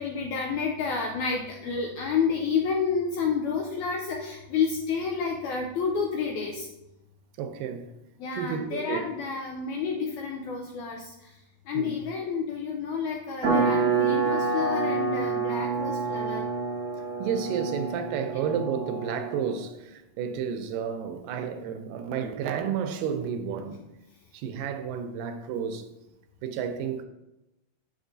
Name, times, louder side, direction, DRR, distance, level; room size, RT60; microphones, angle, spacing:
voice 1, 0.0-6.7 8.2-11.3 11.7-16.5, left 5 dB, 85° left, 1.7 m, -30 dB
voice 2, 7.4-7.9 8.3-9.0 11.7-12.0 17.0-23.8 24.3-25.8 26.4-27.0, right 7 dB, 80° right, 2.2 m, -31 dB
sound 1, 13.4-19.6, right 4 dB, 50° right, 1.4 m, -27 dB
7.8 x 6.2 x 2.6 m
omnidirectional pair, 4.1 m